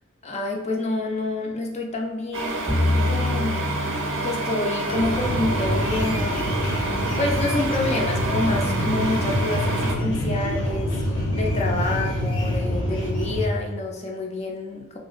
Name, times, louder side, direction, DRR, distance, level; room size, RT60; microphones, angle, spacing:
voice 1, 0.2-3.7 4.2-6.5 7.2-11.0 11.3-15.0, left 2 dB, 35° left, 1 dB, 0.4 m, -28 dB
sound 1, 2.3-10.0, right 2 dB, 70° right, 0.5 m, -29 dB
sound 2, 2.7-6.4, left 1 dB, 20° right, 0.5 m, -27 dB
sound 3, 4.9-13.5, equal, 85° left, 0.7 m, -26 dB
2.8 x 2.7 x 2.4 m, 1.1 s
head